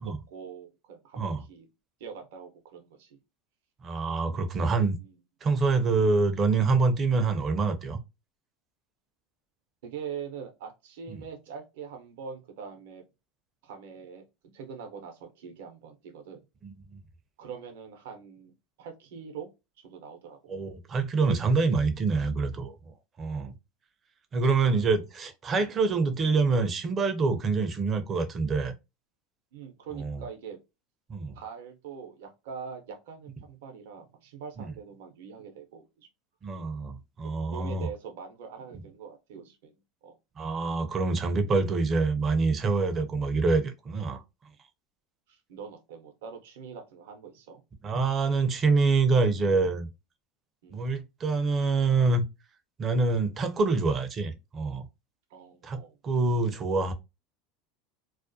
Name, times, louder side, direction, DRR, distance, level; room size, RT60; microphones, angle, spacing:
voice 1, 0.0-1.7 2.0-3.2 5.0-5.1 9.8-13.0 13.6-16.4 17.4-19.5 19.8-20.6 25.6-25.7 29.5-30.6 31.3-36.1 37.2-39.7 40.0-40.2 45.3-47.6 50.6-51.0 55.3-56.0, right 6 dB, 75° right, 0.7 m, -43 dB
voice 2, 3.8-5.0 5.4-8.0 11.1-11.2 16.6-16.7 20.5-23.5 24.3-28.7 29.9-30.2 31.1-31.3 34.6-34.7 36.4-37.9 40.4-44.2 47.8-49.9 50.7-52.2 52.8-54.9 55.6-56.9, right 4 dB, 35° right, 0.5 m, -26 dB
2.4 x 2.1 x 2.5 m
hypercardioid pair, 95°, 0 cm